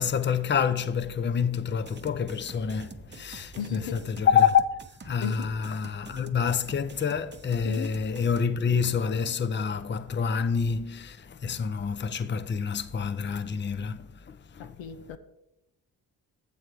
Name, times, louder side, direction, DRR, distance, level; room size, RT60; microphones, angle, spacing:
voice 1, 0.0-4.7 5.0-14.8, left 7 dB, 25° left, 0.6 m, -27 dB
sound 1, 1.8-8.5, right 4 dB, 25° right, 0.7 m, -48 dB
voice 2, 3.6-4.0 5.2-5.6 7.6-7.9 14.6-15.2, left 9 dB, 85° left, 0.7 m, -35 dB
7.4 x 6.8 x 4.7 m
supercardioid pair, 40°, 44 cm